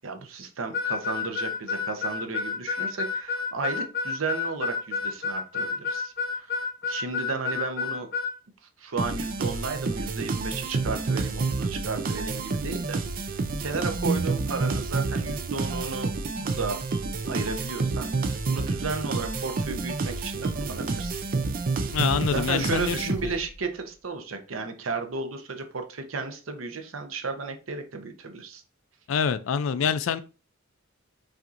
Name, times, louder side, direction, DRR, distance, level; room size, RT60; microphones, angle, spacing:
voice 1, 0.0-8.1 8.8-13.0 13.3-16.1 16.4-16.8 17.3-21.2 22.2-28.6, right 4 dB, 80° right, 0.7 m, -34 dB
Harmonica, 0.7-8.3, left 5 dB, 50° left, 0.8 m, -29 dB
sound 1, 9.0-23.5, right 3 dB, 45° right, 0.4 m, -29 dB
voice 2, 21.9-23.3 29.1-30.2, left 6 dB, 75° left, 0.4 m, -26 dB
5.7 x 2.6 x 2.5 m
head